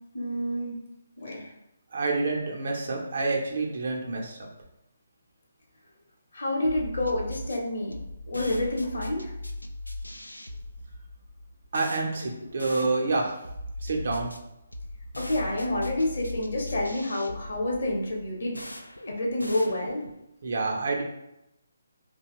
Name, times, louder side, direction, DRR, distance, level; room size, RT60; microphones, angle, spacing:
voice 1, 0.1-0.8 1.2-1.5 6.3-8.0 8.3-9.3 15.2-18.6 19.1-20.0, left 1 dB, 60° left, -1 dB, 0.8 m, -28 dB
voice 2, 1.9-4.4 11.7-13.3 13.8-14.3 20.4-21.0, right 3 dB, 55° right, 0 dB, 0.6 m, -28 dB
sound 1, 6.6-20.2, left 1 dB, 90° left, 0.3 m, -39 dB
2.8 x 2.1 x 3.0 m, 0.86 s
figure-of-eight pair, 140°, 0 cm